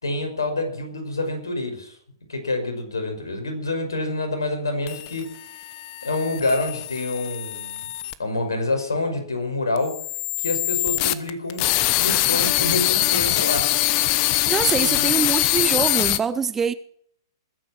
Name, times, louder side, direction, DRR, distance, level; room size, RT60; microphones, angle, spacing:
voice 1, 0.0-1.9 2.3-5.3 6.0-7.8 8.2-9.9 10.4-11.7 12.0-13.7 14.3-15.1, left 2 dB, 70° left, 5 dB, 5.7 m, -27 dB
sound 1, 4.9-8.1 9.8-16.2, left 16 dB, 35° left, 1.0 m, -23 dB
voice 2, 14.5-16.7, right 6 dB, 15° right, 15 dB, 0.6 m, -24 dB
21.0 x 9.4 x 6.1 m, 0.65 s
figure-of-eight pair, 110°, 2 cm